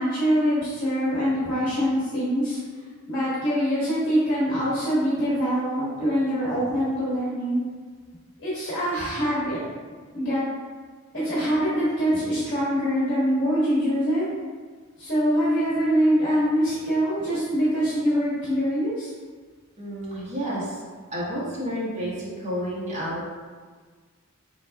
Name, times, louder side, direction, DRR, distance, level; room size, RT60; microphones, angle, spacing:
voice 1, 0.0-2.6 3.1-7.6 8.4-9.7 10.1-10.4 11.1-14.2 15.0-19.1, equal, 50° left, -10 dB, 1.3 m, -24 dB
voice 2, 13.3-13.8 14.3-14.4 15.8-16.5 19.8-20.8 21.1-23.2, equal, 30° right, -8 dB, 1.1 m, -32 dB
5.0 x 4.0 x 2.3 m, 1.5 s
head